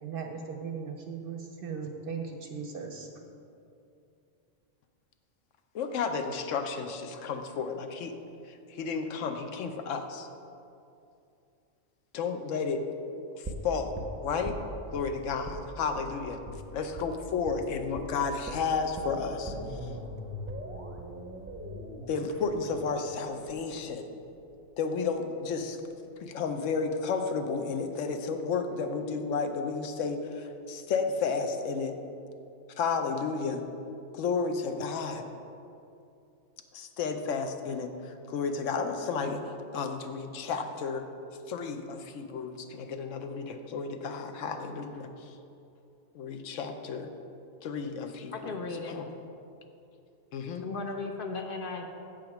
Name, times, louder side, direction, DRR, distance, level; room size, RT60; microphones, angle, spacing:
voice 1, 0.0-3.1, right 6 dB, 55° right, 3 dB, 0.7 m, -38 dB
voice 2, 5.7-8.1 8.5-10.3 12.1-12.8 13.3-14.5 14.9-16.4 16.7-19.5 22.1-24.0 24.8-25.8 26.2-31.9 32.8-33.6 34.1-35.2 36.7-39.4 39.7-41.0 41.5-45.1 46.1-47.1 47.6-48.6 48.9-49.1 50.3-50.7, left 5 dB, 80° left, 6 dB, 1.0 m, -32 dB
sound 1, 13.4-15.1 15.4-15.6 15.9-16.1 16.4-16.6 17.0-17.1 17.5-17.6 18.0-18.1 18.5-24.4 24.7-24.8, equal, 15° right, 0.5 m, -41 dB
voice 3, 48.3-49.0 50.6-51.9, left 3 dB, 55° left, 4 dB, 0.7 m, -36 dB
7.7 x 5.0 x 5.9 m, 2.6 s
omnidirectional pair, 1.3 m